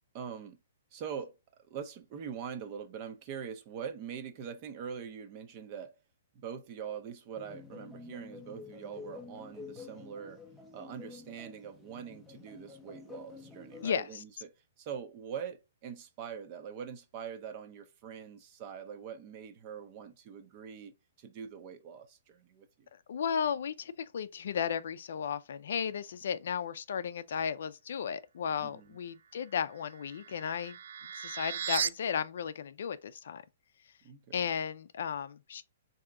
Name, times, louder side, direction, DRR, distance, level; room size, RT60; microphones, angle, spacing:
voice 1, 0.1-0.6 0.9-1.3 1.7-5.9 6.3-10.4 10.7-22.9 28.6-28.9 34.0-34.4, right 7 dB, 35° right, 0.6 m, -43 dB
sound 1, 7.3-13.9, left 4 dB, 5° left, 0.6 m, -49 dB
voice 2, 13.8-14.2 23.1-30.8 31.1-33.4 34.3-35.6, left 7 dB, 70° left, 0.4 m, -34 dB
sound 2, 29.6-31.9, right 8 dB, 75° right, 0.3 m, -37 dB
3.6 x 2.7 x 3.3 m
hypercardioid pair, 155°, 0 cm